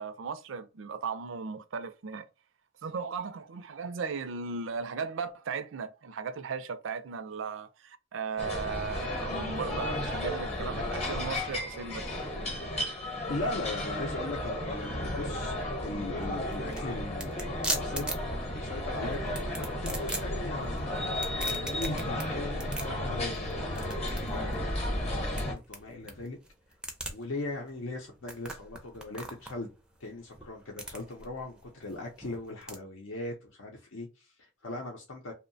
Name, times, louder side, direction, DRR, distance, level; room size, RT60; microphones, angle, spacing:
voice 1, 0.0-2.3 2.8-12.1, right 5 dB, 75° right, 0.4 m, -36 dB
sound 1, 8.4-25.5, left 1 dB, 30° left, 0.8 m, -33 dB
voice 2, 13.3-15.5 15.8-18.2 18.5-26.4 27.1-29.7 30.0-35.3, left 2 dB, 80° left, 0.6 m, -39 dB
sound 2, 16.0-32.8, right 2 dB, 5° right, 0.4 m, -41 dB
2.7 x 2.1 x 2.6 m
head